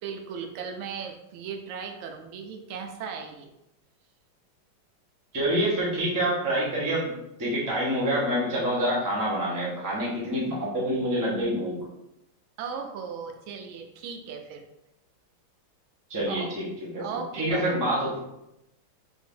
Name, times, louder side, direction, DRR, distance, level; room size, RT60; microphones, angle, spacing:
voice 1, 0.0-3.5 12.6-14.6 16.3-16.5 17.0-17.7, right 6 dB, 85° right, 4 dB, 1.4 m, -37 dB
voice 2, 5.3-7.1 7.4-11.8 16.1-16.6 16.9-17.0 17.3-18.2, right 1 dB, 20° right, -6 dB, 0.4 m, -26 dB
3.6 x 2.6 x 3.6 m, 0.87 s
omnidirectional pair, 2.2 m